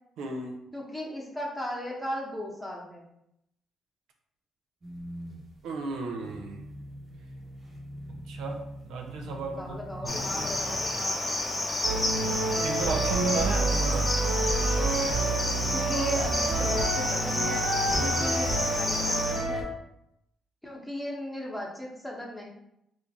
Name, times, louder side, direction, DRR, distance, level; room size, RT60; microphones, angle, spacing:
voice 1, 0.2-0.6 5.6-6.6 8.3-10.8 12.6-14.1 17.9-18.3, right 3 dB, 90° right, 2 dB, 0.5 m, -34 dB
voice 2, 0.7-3.0 9.6-11.2 15.7-17.7 18.0-19.7 20.6-22.5, left 1 dB, 5° left, -4 dB, 1.0 m, -36 dB
sound 1, 4.8-11.3, equal, 35° right, 0.9 m, -43 dB
Cricket, 10.1-19.5, left 2 dB, 25° left, 0.7 m, -30 dB
sound 2, 11.8-19.6, right 3 dB, 60° right, 1.3 m, -28 dB
2.9 x 2.6 x 3.5 m, 0.79 s
cardioid pair, 90°, 0 cm